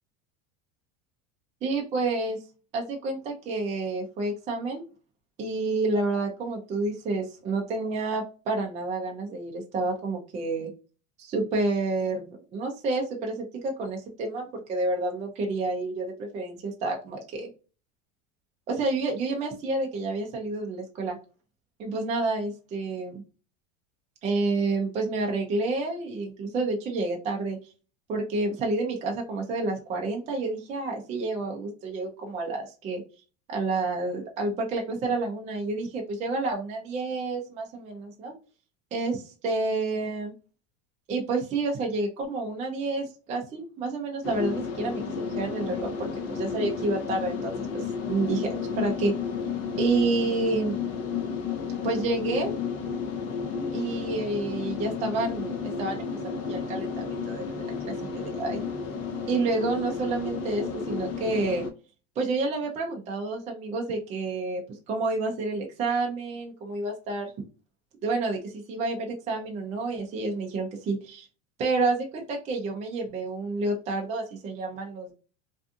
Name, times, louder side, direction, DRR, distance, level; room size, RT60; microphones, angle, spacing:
voice 1, 1.6-2.4 2.7-4.8 5.4-10.7 11.2-17.5 18.7-21.2 21.8-23.2 24.2-27.6 28.1-33.0 33.5-38.3 38.9-40.3 41.1-45.0 45.4-49.1 49.8-50.7 51.8-52.5 53.7-58.6 59.3-61.7 62.2-64.6 64.9-67.3 68.0-71.3 71.6-75.1, right 3 dB, 20° right, 1 dB, 0.4 m, -29 dB
sound 1, 44.2-61.7, left 6 dB, 40° left, 0.6 m, -32 dB
2.6 x 2.3 x 2.5 m, 0.34 s
supercardioid pair, 155°, 38 cm